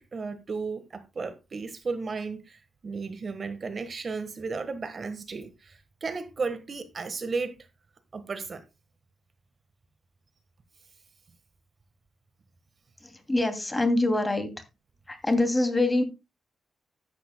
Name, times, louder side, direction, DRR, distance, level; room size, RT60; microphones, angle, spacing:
voice 1, 0.0-7.6 8.1-8.6, right 4 dB, 45° right, 1.4 m, -34 dB
voice 2, 13.0-14.5 15.1-16.0, left 2 dB, 15° left, 2.6 m, -25 dB
14.0 x 11.5 x 2.2 m
cardioid pair, 100°, 0 cm